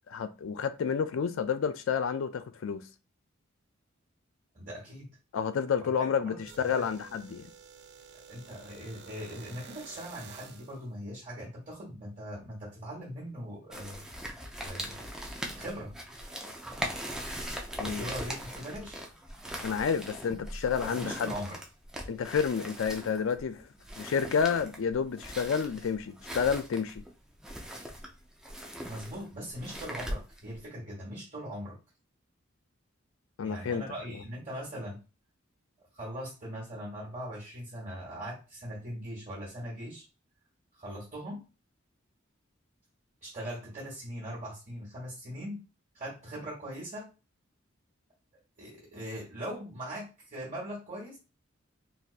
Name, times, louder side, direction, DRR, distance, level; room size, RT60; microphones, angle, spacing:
voice 1, 0.1-2.9 5.3-7.5 17.8-18.1 19.6-21.3 22.1-23.7 24.0-27.0 33.4-33.8 34.1-34.2, left 6 dB, 70° left, 0.4 m, -30 dB
voice 2, 4.5-5.2 6.0-6.4 6.7-6.9 8.3-14.0 14.6-15.0 15.6-15.9 17.8-19.0 20.8-21.6 28.8-31.8 33.4-35.0 35.9-40.0 40.8-41.4 43.2-45.6 45.9-47.1 48.6-51.2, equal, 40° right, 1.4 m, -40 dB
sound 1, 6.4-10.8, right 6 dB, 55° right, 0.5 m, -51 dB
sound 2, 13.7-30.6, equal, 5° right, 0.5 m, -40 dB
4.0 x 2.5 x 2.4 m
head